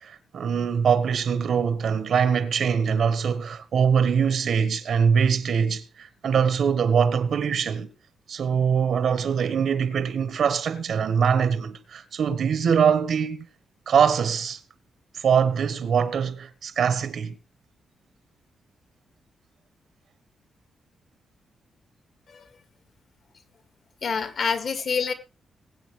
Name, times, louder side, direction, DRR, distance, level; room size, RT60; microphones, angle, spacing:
voice 1, 0.0-7.9 8.3-13.5 13.9-14.6 15.1-17.4, right 7 dB, 60° right, 1.3 m, -23 dB
voice 2, 24.0-25.1, left 5 dB, 55° left, 2.3 m, -27 dB
21.5 x 8.5 x 3.3 m
cardioid pair, 135°, 0 cm